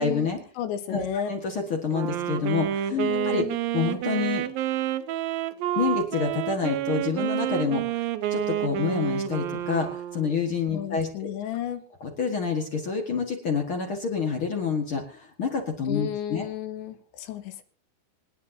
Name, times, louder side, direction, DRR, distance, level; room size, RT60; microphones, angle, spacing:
voice 1, 0.0-0.4 0.9-2.9 3.3-3.4 3.7-4.5 5.7-11.3 12.0-16.5, left 5 dB, 60° left, 3 dB, 1.4 m, -28 dB
voice 2, 0.6-1.3 2.9-3.6 10.7-11.8 15.9-17.6, left 10 dB, 85° left, 9 dB, 3.5 m, -32 dB
Wind instrument woodwind instrument, 1.9-10.5, right 12 dB, 75° right, 2.2 m, -29 dB
26.5 x 10.5 x 2.8 m, 0.38 s
omnidirectional pair, 5.1 m